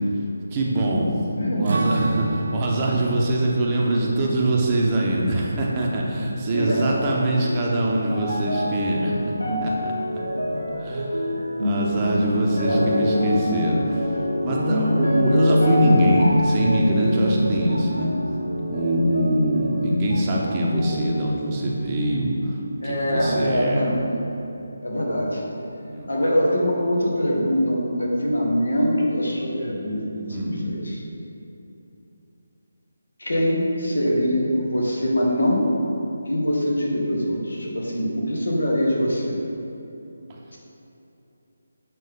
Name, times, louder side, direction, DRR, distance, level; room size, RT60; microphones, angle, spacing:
voice 1, 0.5-1.2 1.5-9.1 9.6-9.9 10.8-11.1 11.6-14.2 14.4-18.1 18.7-22.6 22.8-23.9 25.8-26.1 30.3-30.6 40.3-40.4, right 1 dB, 20° right, -3 dB, 0.9 m, -23 dB
voice 2, 1.4-1.7 6.5-7.0 12.7-13.1 22.8-24.1 24.8-25.4 26.1-31.0 33.2-35.7 36.2-39.3 40.5-40.6, equal, 65° left, -2 dB, 1.6 m, -23 dB
Strum, 1.7-6.3, right 2 dB, 50° right, 0.3 m, -30 dB
sound 1, 6.9-20.4 20.7-21.7 22.4-22.5, left 1 dB, 85° left, 1.4 m, -25 dB
7.4 x 5.4 x 3.7 m, 2.9 s
figure-of-eight pair, 150°, 0 cm